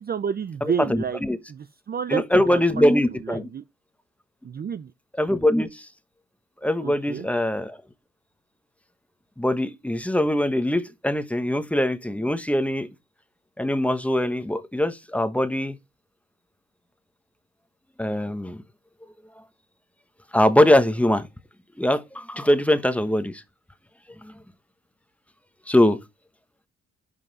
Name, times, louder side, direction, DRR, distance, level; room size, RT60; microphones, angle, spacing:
voice 1, 0.0-1.2 1.5-2.6 3.2-3.6 4.4-4.9 6.8-7.3, right 7 dB, 30° right, 0.5 m, -30 dB
voice 2, 0.6-1.4 2.1-3.5 5.2-5.9 6.6-7.8 9.4-12.9 13.6-15.8 18.0-18.6 20.3-21.3 21.8-23.4 24.2-24.3 25.7-26.0, left 1 dB, 5° left, 1.2 m, -22 dB
11.0 x 5.5 x 4.1 m
cardioid pair, 90°, 30 cm